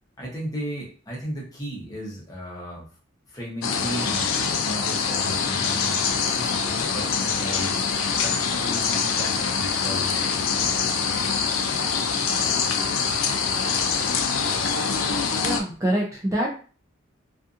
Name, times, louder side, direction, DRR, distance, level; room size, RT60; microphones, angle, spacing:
voice 1, 0.2-2.9 3.3-7.7 8.2-10.9, right 1 dB, 20° left, -3 dB, 0.8 m, -35 dB
sound 1, 3.6-15.6, left 6 dB, 90° left, 0.4 m, -24 dB
voice 2, 15.4-16.5, right 1 dB, 15° right, -3 dB, 0.4 m, -25 dB
2.5 x 2.5 x 2.5 m, 0.39 s
head